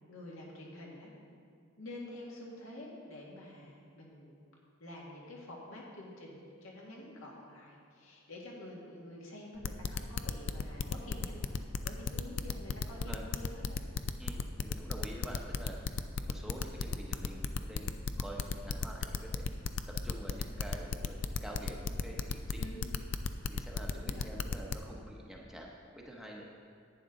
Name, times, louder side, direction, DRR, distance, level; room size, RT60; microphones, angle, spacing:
voice 1, 0.1-1.1 1.8-4.4 4.8-13.8 22.6-22.9 23.9-24.3, left 1 dB, 75° left, -3 dB, 2.0 m, -48 dB
sound 1, 9.6-24.7, left 5 dB, 60° left, 0.4 m, -34 dB
voice 2, 12.9-13.2 14.2-15.7 16.3-19.4 20.0-22.7 23.5-26.5, equal, ahead, -2 dB, 0.8 m, -47 dB
11.0 x 9.3 x 3.8 m, 2.3 s
head